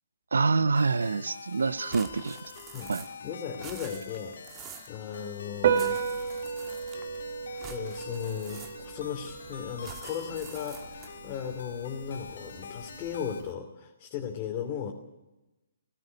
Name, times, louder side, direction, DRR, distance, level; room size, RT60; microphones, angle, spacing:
voice 1, 0.3-2.5 2.9-3.0, right 4 dB, 75° right, 17 dB, 0.7 m, -26 dB
sound 1, 0.7-13.4, left 6 dB, 65° left, 1.9 m, -46 dB
sound 2, 1.9-3.3 3.5-5.0 5.7-7.2 7.6-9.0 9.8-11.2, right 8 dB, 20° right, 1.7 m, -47 dB
voice 2, 3.2-6.0 7.7-14.9, left 8 dB, 30° left, 0 dB, 2.8 m, -36 dB
Piano, 5.5-13.5, right 7 dB, 50° right, 1.6 m, -34 dB
17.0 x 16.5 x 9.7 m, 1.0 s
figure-of-eight pair, 135°, 0 cm